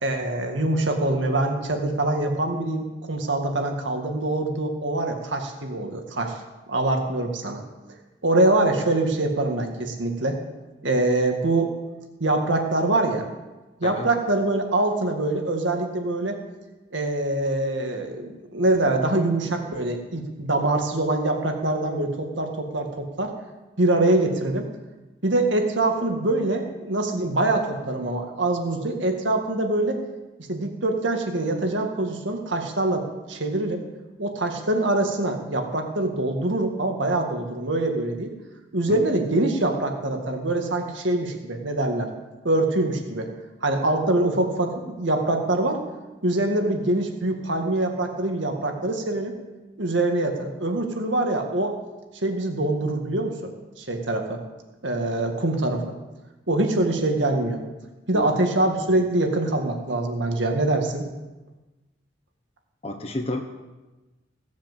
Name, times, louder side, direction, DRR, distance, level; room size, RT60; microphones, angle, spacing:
voice 1, 0.0-6.4 6.7-7.6 8.2-10.4 10.8-11.7 12.2-13.3 13.8-16.4 16.9-23.3 23.8-24.7 25.2-30.0 30.5-33.8 34.2-38.3 38.7-42.1 42.4-43.3 43.6-45.8 46.2-49.3 49.8-51.7 52.2-53.5 53.8-54.4 54.8-55.8 56.5-57.6 58.1-61.1, right 2 dB, 75° right, 3 dB, 2.0 m, -24 dB
voice 2, 62.8-63.4, left 1 dB, 30° left, 4 dB, 1.1 m, -30 dB
17.0 x 7.3 x 7.4 m, 1.1 s
head